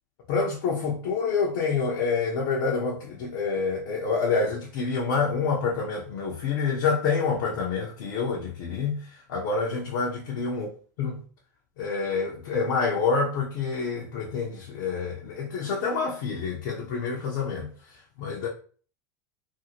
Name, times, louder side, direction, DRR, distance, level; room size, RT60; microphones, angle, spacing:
voice 1, 0.3-10.7 11.0-11.2 11.8-18.5, left 5 dB, 70° left, 0.8 m, -27 dB
2.7 x 2.7 x 2.8 m
hypercardioid pair, 100°, 10 cm